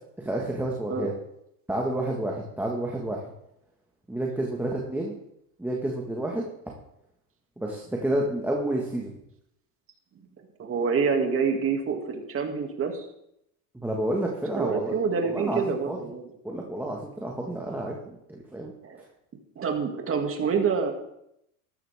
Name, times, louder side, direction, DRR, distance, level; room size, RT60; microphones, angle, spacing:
voice 1, 0.2-1.1 1.7-3.2 4.1-5.1 5.6-6.5 7.6-9.1 13.7-16.0 16.4-18.0 18.3-18.7, right 1 dB, 5° right, -1 dB, 1.7 m, -30 dB
voice 2, 10.4-13.1 14.5-16.3 18.8-19.0 19.6-20.9, right 5 dB, 30° right, 3 dB, 2.4 m, -27 dB
13.5 x 12.0 x 3.6 m, 0.77 s
supercardioid pair, 115°, 44 cm